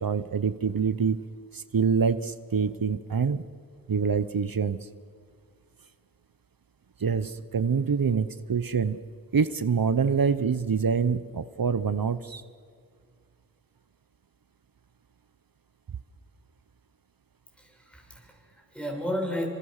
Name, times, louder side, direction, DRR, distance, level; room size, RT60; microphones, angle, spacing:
voice 1, 0.0-1.2 1.5-3.4 3.9-4.9 7.0-9.0 9.3-12.4, right 6 dB, 75° right, 13 dB, 0.9 m, -26 dB
voice 2, 17.6-19.5, equal, 5° left, 1 dB, 6.7 m, -33 dB
27.5 x 26.0 x 6.6 m, 2.1 s
wide cardioid pair, 60°, 35 cm